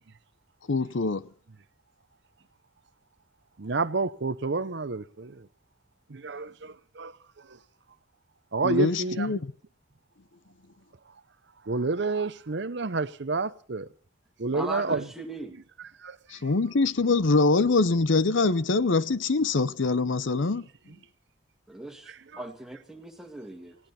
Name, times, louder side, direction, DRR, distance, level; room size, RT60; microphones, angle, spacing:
voice 1, 0.7-1.3 8.6-9.5 16.3-20.7, left 3 dB, 70° left, 0.7 m, -24 dB
voice 2, 3.6-5.5 6.1-7.1 7.5-7.6 8.5-9.4 11.7-13.9 14.4-15.1 15.8-16.2 16.5-16.6 22.1-22.5, right 3 dB, 60° right, 0.7 m, -30 dB
voice 3, 14.5-15.5 21.7-23.8, right 2 dB, ahead, 2.1 m, -39 dB
20.0 x 17.0 x 4.2 m
head